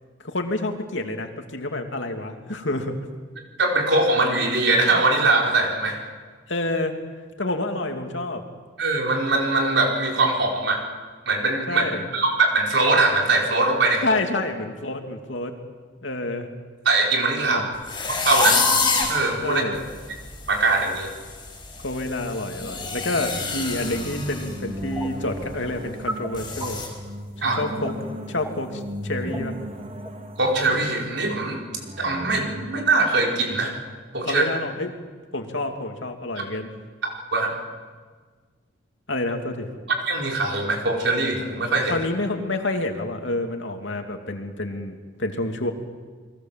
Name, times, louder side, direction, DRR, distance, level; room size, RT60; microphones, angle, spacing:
voice 1, 0.2-2.9 6.5-7.0 7.4-8.4 11.7-12.0 14.0-15.5 16.0-16.5 17.4-17.7 19.4-19.8 21.8-26.8 27.4-28.0 28.3-29.5 34.2-34.9 35.3-36.7 39.1-39.7 41.9-45.7, left 2 dB, 70° left, 4 dB, 2.7 m, -28 dB
voice 2, 3.6-6.0 8.8-10.8 11.3-11.8 12.1-14.2 16.8-17.6 18.2-18.6 19.1-19.6 20.5-21.1 27.4-27.6 30.4-31.6 32.0-33.7 34.1-34.4 37.0-37.5 40.1-42.0, right 3 dB, 60° right, 0 dB, 4.8 m, -21 dB
sound 1, 17.9-19.2 19.8-19.9 20.3-20.6 20.8-24.5 24.8-25.0 25.4-25.5 26.3-26.9, left 4 dB, 20° left, 5.8 m, -26 dB
sound 2, 22.6-34.2, equal, 35° right, 1.8 m, -37 dB
sound 3, 24.9-25.3 25.6-25.7 26.1-26.3 26.6-27.1 27.5-27.9 28.3-28.9 29.1-29.5 30.0-30.1 30.6-30.7, right 1 dB, 10° right, 2.6 m, -32 dB
29.0 x 22.0 x 7.6 m, 1.5 s
head